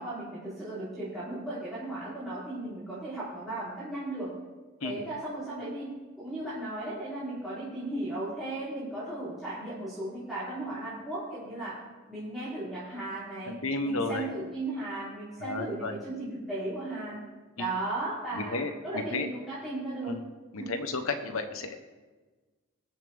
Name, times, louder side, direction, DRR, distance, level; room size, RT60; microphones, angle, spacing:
voice 1, 0.0-4.3 4.8-11.7 12.1-13.5 13.8-17.2 17.6-18.6 18.8-20.1 20.6-20.7, right 2 dB, ahead, -13 dB, 4.0 m, -36 dB
voice 2, 13.5-14.3 15.4-15.9 17.6-17.7 18.3-19.3 20.0-20.2 20.5-21.8, left 3 dB, 75° left, 7 dB, 1.1 m, -33 dB
22.0 x 7.3 x 3.6 m, 1.3 s
head